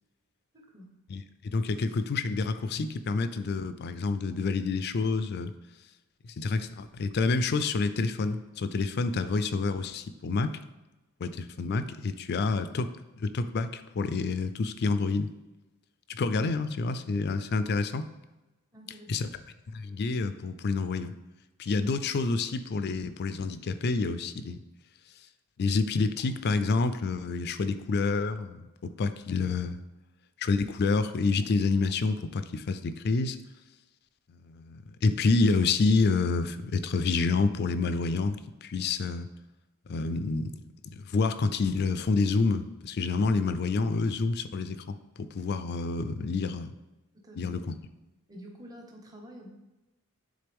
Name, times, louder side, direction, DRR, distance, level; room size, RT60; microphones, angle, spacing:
voice 1, 0.5-1.0 18.7-19.1 47.1-47.5 48.3-49.5, equal, 15° right, 1 dB, 0.9 m, -48 dB
voice 2, 1.1-5.5 6.2-10.6 11.2-12.9 13.2-15.3 16.1-18.1 19.1-19.3 19.7-21.1 21.6-24.6 25.6-28.7 29.0-29.8 30.4-33.4 34.3-39.3 39.9-40.6 40.9-46.7 47.4-47.8, left 4 dB, 50° left, 11 dB, 0.4 m, -28 dB
9.9 x 3.8 x 3.5 m, 1.1 s
head